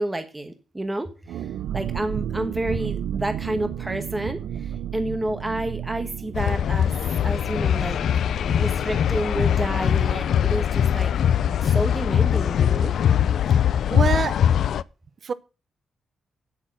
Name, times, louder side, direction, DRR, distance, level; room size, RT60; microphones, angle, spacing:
voice 1, 0.0-6.9 7.2-8.0 8.5-11.1 11.4-12.9, right 1 dB, 10° right, 8 dB, 1.2 m, -30 dB
sound 1, 1.3-10.7 10.9-11.0 11.4-11.7, right 10 dB, 90° right, 0.7 m, -34 dB
sound 2, 6.3-14.8, left 9 dB, 65° left, 0.4 m, -21 dB
voice 2, 13.9-14.4 15.2-15.3, right 6 dB, 40° right, 16 dB, 0.8 m, -25 dB
9.0 x 8.4 x 6.0 m, 0.33 s
wide cardioid pair, 160°, 0 cm